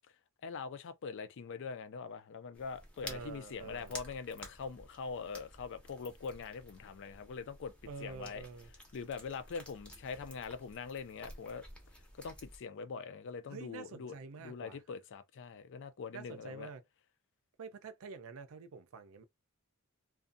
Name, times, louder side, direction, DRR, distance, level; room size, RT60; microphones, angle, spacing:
voice 1, 0.4-7.7 8.0-8.4 8.9-11.6 12.2-16.7, left 5 dB, 55° left, 0.4 m, -43 dB
sound 1, 2.5-12.6, left 1 dB, 5° left, 0.6 m, -52 dB
voice 2, 3.0-4.0 7.9-8.7 13.5-14.8 16.1-16.8 17.6-19.2, right 4 dB, 65° right, 0.5 m, -47 dB
2.5 x 2.3 x 2.5 m
head